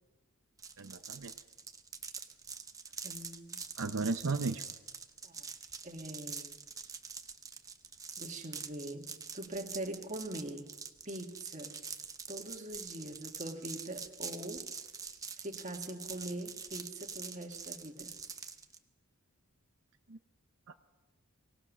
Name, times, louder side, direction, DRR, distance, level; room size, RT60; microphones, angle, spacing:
sound 1, 0.6-18.8, right 5 dB, 15° right, 0.9 m, -45 dB
voice 1, 0.8-1.3 3.8-4.6 20.1-20.2 20.7-20.8, right 4 dB, 70° right, 8 dB, 0.7 m, -34 dB
voice 2, 3.0-3.6 5.2-5.5 5.8-6.5 8.2-9.1 9.3-10.7 11.1-11.8 12.3-14.6 15.4-18.2, right 1 dB, 35° right, 4 dB, 1.8 m, -42 dB
24.0 x 18.5 x 6.2 m, 1.2 s
head